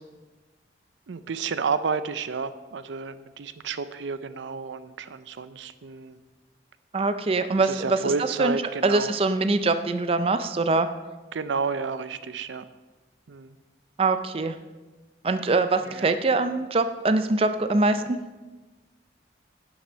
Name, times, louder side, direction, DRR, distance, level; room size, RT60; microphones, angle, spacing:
voice 1, 1.1-6.2 7.6-9.1 11.3-12.7 13.3-13.6 15.8-16.1, right 5 dB, 85° right, 13 dB, 0.5 m, -31 dB
voice 2, 6.9-8.0 8.4-8.6 8.8-10.9 14.0-14.6 15.2-18.2, right 3 dB, 30° right, 10 dB, 0.4 m, -23 dB
11.0 x 6.0 x 5.6 m, 1.2 s
head